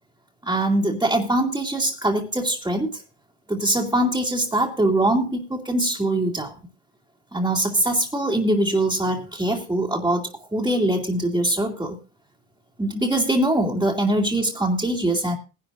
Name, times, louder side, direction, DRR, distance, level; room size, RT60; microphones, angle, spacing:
voice 1, 0.4-3.0 3.5-6.5 7.3-12.0 12.8-15.4, right 1 dB, 10° right, -3 dB, 2.5 m, -22 dB
21.0 x 11.5 x 2.6 m, 0.30 s
cardioid pair, 100°, 42 cm